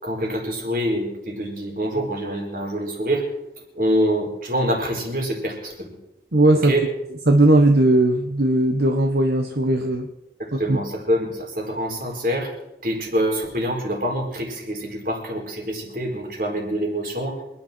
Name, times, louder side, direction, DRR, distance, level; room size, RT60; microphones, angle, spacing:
voice 1, 0.0-3.2 3.7-5.9 6.5-6.8 10.4-12.5 12.8-17.4, equal, 50° right, 1 dB, 4.7 m, -25 dB
voice 2, 6.3-6.8 7.3-10.1 10.5-10.8, right 1 dB, 70° right, 4 dB, 1.3 m, -18 dB
26.5 x 10.5 x 4.5 m, 0.91 s
head